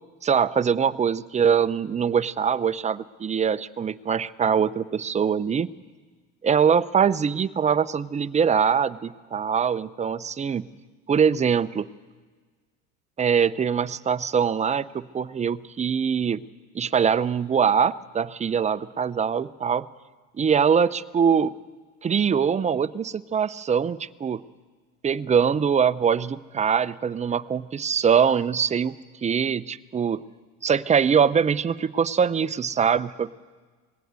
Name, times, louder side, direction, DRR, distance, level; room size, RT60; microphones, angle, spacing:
voice 1, 0.2-5.7 6.4-10.6 11.1-11.9 13.2-16.4 16.7-19.8 20.4-21.6 22.0-24.4 25.0-28.9 29.2-30.2 30.6-33.3, right 7 dB, 20° right, 14 dB, 0.6 m, -23 dB
20.0 x 17.0 x 8.2 m, 1.4 s
supercardioid pair, 100°, 36 cm